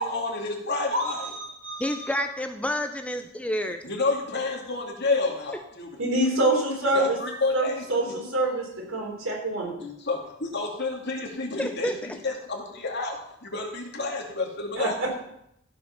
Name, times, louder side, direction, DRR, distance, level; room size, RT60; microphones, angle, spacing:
voice 1, 0.0-1.3 3.8-6.0 6.8-8.0 10.0-15.0, left 3 dB, 55° left, 0 dB, 2.5 m, -30 dB
voice 2, 0.9-2.1 6.0-7.2 7.5-9.9 14.8-15.1, right 1 dB, 85° right, -2 dB, 4.3 m, -26 dB
voice 3, 1.8-3.8 11.6-11.9, equal, 5° left, 6 dB, 0.5 m, -29 dB
15.0 x 5.4 x 5.9 m, 0.78 s
head